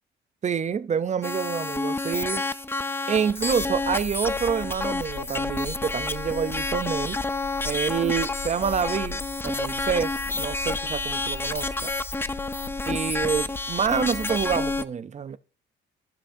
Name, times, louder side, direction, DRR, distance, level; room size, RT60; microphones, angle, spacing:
voice 1, 0.4-2.4 3.1-7.2 7.7-11.9 12.9-15.4, right 7 dB, 35° right, 0.5 m, -27 dB
sound 1, 1.2-14.8, left 3 dB, 10° left, 0.4 m, -29 dB
sound 2, 3.4-14.8, left 4 dB, 75° left, 1.5 m, -40 dB
15.5 x 5.9 x 2.6 m
cardioid pair, 90°, 20 cm